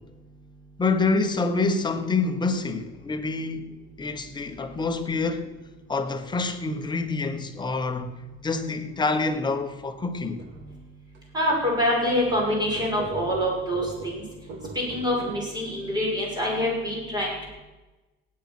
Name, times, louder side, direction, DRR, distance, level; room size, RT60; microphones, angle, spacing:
voice 1, 0.8-3.7 4.0-5.5 5.9-8.1 8.4-10.4, left 3 dB, 20° left, 1.3 m, -26 dB
sound 1, 10.4-10.6 11.1-11.2 11.5-11.6 12.0-15.3, right 4 dB, 60° right, 2.4 m, -40 dB
voice 2, 11.3-14.2 14.9-17.5, left 1 dB, 20° right, 6.0 m, -25 dB
18.0 x 8.7 x 6.2 m
cardioid pair, 130°, 21 cm